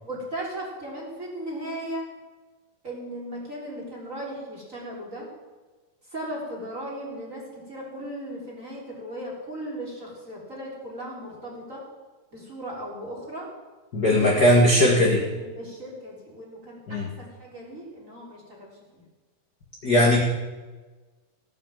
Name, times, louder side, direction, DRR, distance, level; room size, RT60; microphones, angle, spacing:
voice 1, 0.0-2.1 2.8-5.3 6.1-11.9 12.3-13.5 13.9-14.5 15.2-19.0, right 1 dB, 20° right, -4 dB, 3.7 m, -37 dB
voice 2, 13.9-15.2 16.9-17.0 19.8-20.2, left 1 dB, 40° left, -2 dB, 1.4 m, -18 dB
15.5 x 8.9 x 7.4 m, 1.3 s
omnidirectional pair, 4.5 m